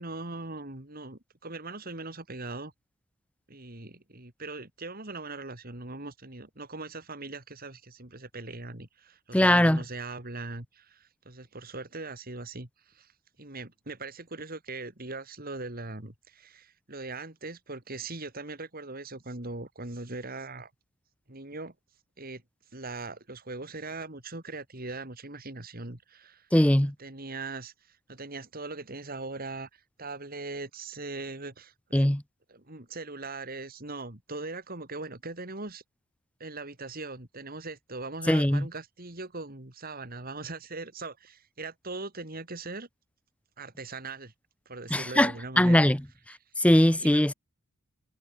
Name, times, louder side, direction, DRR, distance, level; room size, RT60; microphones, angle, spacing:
voice 1, 0.0-2.7 3.5-13.1 13.4-20.7 21.3-21.7 22.2-22.4 22.7-26.5 26.8-32.1 32.5-35.8 36.4-42.9 43.6-44.3 44.6-45.8 46.6-46.7 47.0-47.3, right 3 dB, 45° right, 3.1 m, -40 dB
voice 2, 9.3-9.8 26.5-26.9 31.9-32.2 38.3-38.7 44.9-45.3 45.6-46.0 46.6-47.3, left 1 dB, 5° left, 0.8 m, -21 dB
head